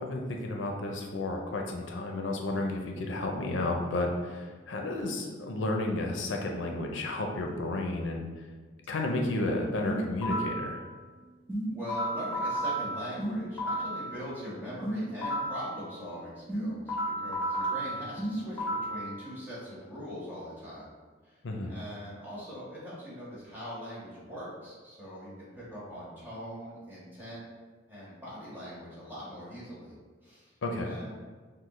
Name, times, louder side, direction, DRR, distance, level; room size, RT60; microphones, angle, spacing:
voice 1, 0.0-8.3 8.9-10.8 21.4-21.7 30.6-30.9, left 2 dB, 80° left, 2 dB, 0.5 m, -32 dB
sound 1, 9.8-10.7 11.5-14.0 14.8-15.7 16.5-19.0, right 1 dB, 10° left, 1.0 m, -32 dB
voice 2, 11.7-20.9 21.2-21.4 21.7-27.4 27.9-30.0 30.2-30.5 30.8-31.3, equal, 10° right, -9 dB, 1.4 m, -42 dB
6.2 x 2.1 x 3.1 m, 1.4 s
head